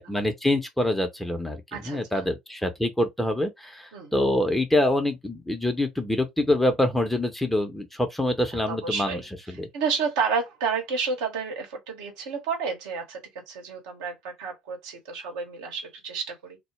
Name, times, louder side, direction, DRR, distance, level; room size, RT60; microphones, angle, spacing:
voice 1, 0.0-9.2 9.5-9.7, left 1 dB, 5° left, 0.8 m, -25 dB
voice 2, 1.7-2.2 3.9-4.1 8.7-9.3 9.7-13.2 13.5-16.6, right 5 dB, 75° right, 1.0 m, -30 dB
2.2 x 2.1 x 3.1 m
hypercardioid pair, 65°, 3 cm